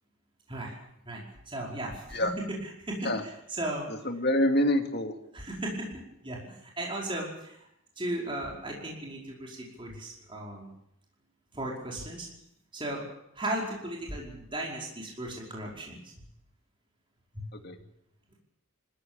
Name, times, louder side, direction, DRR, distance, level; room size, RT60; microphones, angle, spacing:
voice 1, 1.0-3.9 5.3-7.7 8.0-10.7 11.5-12.3 12.7-13.1 13.3-16.3 17.3-17.5, right 1 dB, 25° right, -2 dB, 5.1 m, -36 dB
voice 2, 4.0-5.1 17.6-17.8, left 1 dB, 50° left, 5 dB, 2.6 m, -26 dB
26.0 x 14.5 x 8.9 m, 0.79 s
head